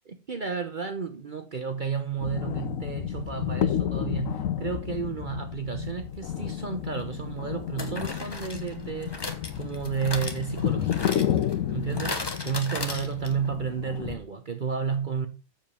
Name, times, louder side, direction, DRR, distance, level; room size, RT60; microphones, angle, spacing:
voice 1, 0.1-11.0 11.7-15.3, right 6 dB, 40° right, 0.9 m, -32 dB
sound 1, 2.2-14.2, left 10 dB, 80° left, 1.2 m, -31 dB
sound 2, 6.5-6.6 7.8-13.5 13.8-13.9 14.1-14.2, left 2 dB, 20° left, 1.0 m, -37 dB
7.3 x 7.2 x 5.6 m
omnidirectional pair, 1.4 m